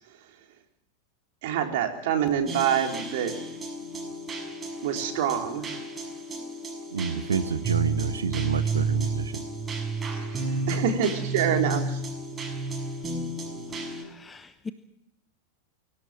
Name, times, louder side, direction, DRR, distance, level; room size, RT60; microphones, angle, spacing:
voice 1, 1.4-3.3 4.8-5.7 10.1-12.0, right 8 dB, 50° right, 3 dB, 3.8 m, -26 dB
sound 1, 2.5-14.0, right 3 dB, 15° right, 6.4 m, -32 dB
voice 2, 6.9-9.4, right 6 dB, 70° right, 13 dB, 1.3 m, -28 dB
voice 3, 13.9-14.7, left 4 dB, 15° left, 12 dB, 1.0 m, -42 dB
25.0 x 17.5 x 7.6 m, 0.79 s
figure-of-eight pair, 90°, 0 cm